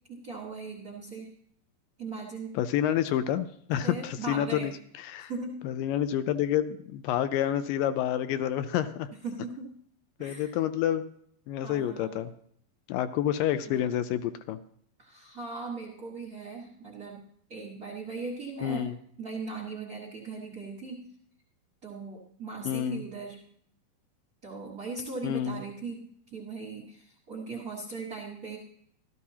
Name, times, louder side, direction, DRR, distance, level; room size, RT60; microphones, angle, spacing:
voice 1, 0.1-1.3 2.0-2.6 3.8-4.7 5.3-5.6 9.2-9.7 10.2-10.5 11.6-12.1 13.7-13.8 15.0-17.2 17.5-18.9 19.2-21.0 21.8-23.4 24.4-28.6, right 3 dB, 70° right, -3 dB, 0.8 m, -39 dB
voice 2, 2.6-4.7 5.0-5.3 5.6-9.1 10.2-11.0 11.5-12.3 12.9-14.6 18.6-19.0 22.7-23.0 25.2-25.6, left 11 dB, 80° left, 12 dB, 2.0 m, -28 dB
14.0 x 13.5 x 2.8 m, 0.65 s
omnidirectional pair, 4.3 m